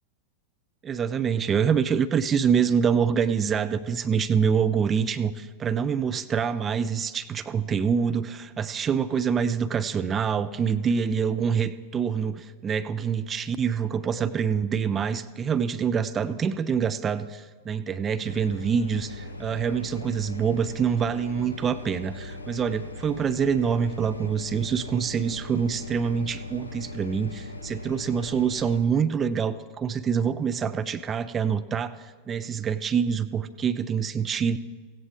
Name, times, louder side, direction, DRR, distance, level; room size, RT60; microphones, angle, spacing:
voice 1, 0.8-34.6, right 7 dB, 20° right, 11 dB, 0.5 m, -26 dB
sound 1, 18.3-28.8, left 2 dB, 75° left, 1.2 m, -39 dB
16.5 x 15.5 x 3.6 m, 1.4 s
figure-of-eight pair, 90°, 0 cm